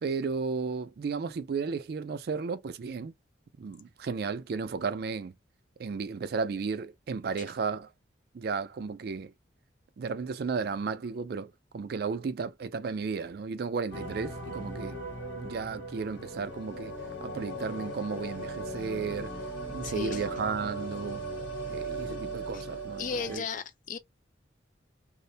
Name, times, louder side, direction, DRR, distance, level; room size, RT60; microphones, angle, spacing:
voice 1, 0.0-3.1 3.6-5.4 5.8-7.9 8.3-9.3 10.0-15.0 15.4-16.9 17.2-19.4 19.7-21.2 21.7-23.4, right 5 dB, 55° right, 0.3 m, -34 dB
sound 1, 13.9-23.4, right 2 dB, 90° left, 1.1 m, -38 dB
voice 2, 19.8-20.3 22.5-22.6 23.0-24.0, left 5 dB, 40° left, 0.3 m, -35 dB
2.5 x 2.1 x 2.7 m
head